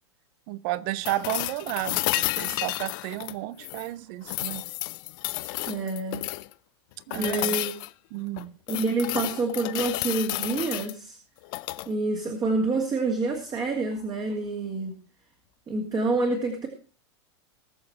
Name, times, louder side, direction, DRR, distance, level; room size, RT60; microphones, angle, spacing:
voice 1, 0.5-4.6 7.1-7.6 8.1-8.5, right 16 dB, 45° right, 0.9 m, -32 dB
sound 1, 1.0-3.9 4.2-6.5 7.1-7.9 8.4-10.9 11.4-11.9 13.9-14.0, left 21 dB, 45° left, 0.6 m, -31 dB
voice 2, 5.7-6.2 7.1-7.7 8.7-11.2 11.9-15.0 15.7-16.7, right 3 dB, 25° right, 2.7 m, -27 dB
20.5 x 7.1 x 4.6 m
figure-of-eight pair, 90°, 15 cm